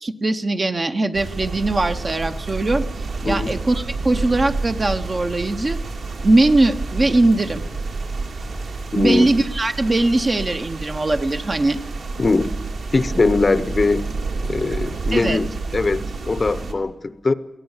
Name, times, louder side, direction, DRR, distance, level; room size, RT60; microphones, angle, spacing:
voice 1, 0.0-2.8 3.2-5.8 6.2-7.6 9.0-11.8 15.1-15.4, right 2 dB, 25° right, 8 dB, 0.8 m, -20 dB
sound 1, 1.1-16.7, right 3 dB, 60° right, 2.4 m, -29 dB
voice 2, 8.9-9.3 12.2-12.5 12.9-14.1 14.4-17.3, left 3 dB, 25° left, 14 dB, 0.8 m, -21 dB
23.0 x 17.0 x 7.2 m, 1.0 s
wide cardioid pair, 150°, 0 cm